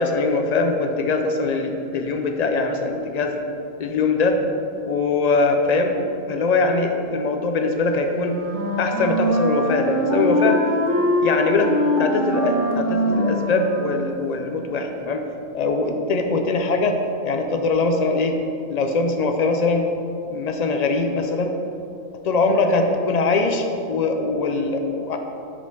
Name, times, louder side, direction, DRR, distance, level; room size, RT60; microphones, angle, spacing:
voice 1, 0.0-3.4 3.8-4.4 4.9-6.0 6.3-8.4 8.8-10.6 11.2-11.7 12.0-15.2 15.5-17.0 17.2-18.4 18.7-19.8 20.3-21.6 22.2-25.2, left 3 dB, 75° left, 4 dB, 0.3 m, -22 dB
Wind instrument woodwind instrument, 8.1-14.1, equal, 70° right, 1.3 m, -23 dB
7.6 x 4.2 x 5.2 m, 2.7 s
omnidirectional pair, 1.4 m